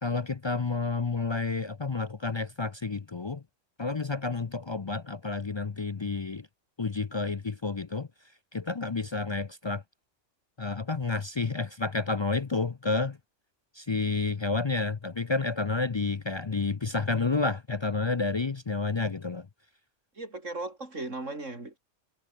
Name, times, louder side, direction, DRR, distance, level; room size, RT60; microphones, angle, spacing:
voice 1, 0.0-3.4 3.8-6.5 6.8-8.1 8.5-9.8 10.6-13.2 13.7-19.5, left 4 dB, 35° left, 0.4 m, -30 dB
voice 2, 20.2-21.8, right 2 dB, 85° right, 5.2 m, -37 dB
omnidirectional pair, 1.3 m